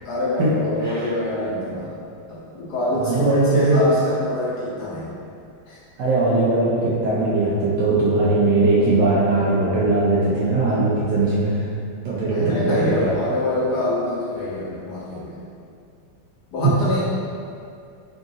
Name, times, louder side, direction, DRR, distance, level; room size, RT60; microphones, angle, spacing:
voice 1, 0.0-1.9 2.3-5.1 5.7-5.8 12.2-15.4 16.5-17.0, left 1 dB, 70° left, -7 dB, 1.0 m, -25 dB
voice 2, 3.0-3.8 6.0-11.6 12.0-12.6 13.0-13.1, right 2 dB, 70° right, -8 dB, 1.2 m, -19 dB
3.7 x 2.5 x 3.8 m, 2.3 s
omnidirectional pair, 2.1 m